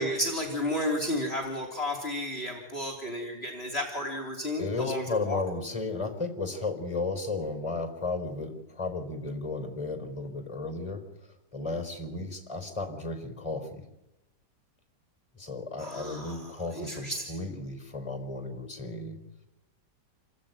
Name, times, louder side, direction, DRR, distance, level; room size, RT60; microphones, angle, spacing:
voice 1, 0.0-5.4 15.8-16.4 16.7-17.3, left 1 dB, 35° left, 2 dB, 3.6 m, -32 dB
voice 2, 4.6-13.9 15.3-19.2, left 3 dB, 15° left, 7 dB, 4.0 m, -34 dB
27.5 x 19.5 x 9.1 m, 0.99 s
omnidirectional pair, 1.9 m